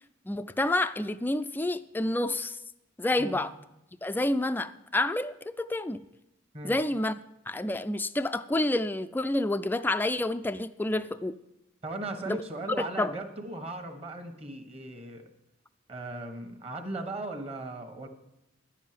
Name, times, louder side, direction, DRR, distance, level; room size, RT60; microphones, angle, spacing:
voice 1, 0.3-2.6 3.0-3.5 4.0-6.0 6.6-7.2 7.5-11.3 12.3-12.4 12.8-13.1, left 1 dB, 10° left, 0.3 m, -29 dB
voice 2, 11.8-15.3 15.9-18.1, right 2 dB, 30° right, 1.4 m, -38 dB
10.5 x 7.3 x 9.3 m
head